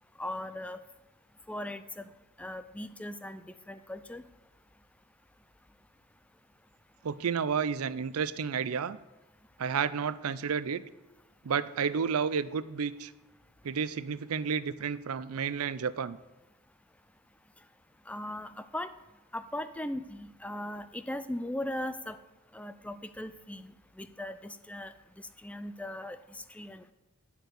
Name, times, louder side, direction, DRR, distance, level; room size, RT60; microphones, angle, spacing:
voice 1, 0.2-0.8 1.5-2.1 2.4-4.2 18.1-18.9 19.3-22.2 22.5-26.9, left 1 dB, 5° left, 12 dB, 0.3 m, -39 dB
voice 2, 7.0-9.0 9.6-10.8 11.4-13.1 13.6-16.2, right 6 dB, 90° right, 16 dB, 0.5 m, -31 dB
11.5 x 4.5 x 8.2 m, 1.1 s
head